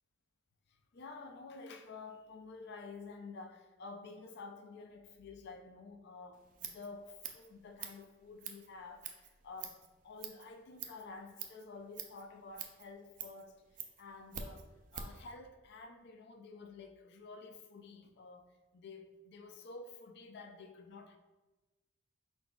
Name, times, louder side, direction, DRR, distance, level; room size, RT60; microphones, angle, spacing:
voice 1, 0.7-21.2, left 3 dB, 50° left, 6 dB, 0.4 m, -51 dB
Scissors, 6.3-15.3, right 7 dB, 40° right, 0.3 m, -48 dB
4.7 x 3.9 x 2.3 m, 1.1 s
head